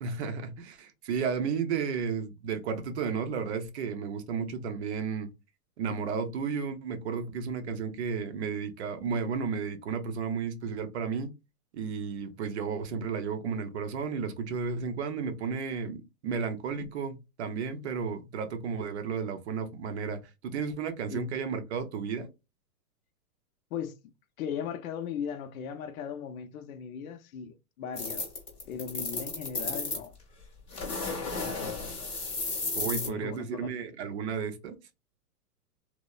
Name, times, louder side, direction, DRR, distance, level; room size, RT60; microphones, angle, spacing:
voice 1, 0.0-5.3 5.8-11.3 11.7-22.3 32.7-34.8, right 5 dB, 45° right, 0.5 m, -33 dB
voice 2, 24.4-28.3 28.7-30.2 31.4-32.1 32.8-33.9, left 7 dB, 60° left, 0.5 m, -38 dB
sound 1, 28.0-30.1 30.7-33.1, left 3 dB, 10° left, 0.6 m, -33 dB
3.1 x 2.0 x 2.3 m
hypercardioid pair, 150°, 47 cm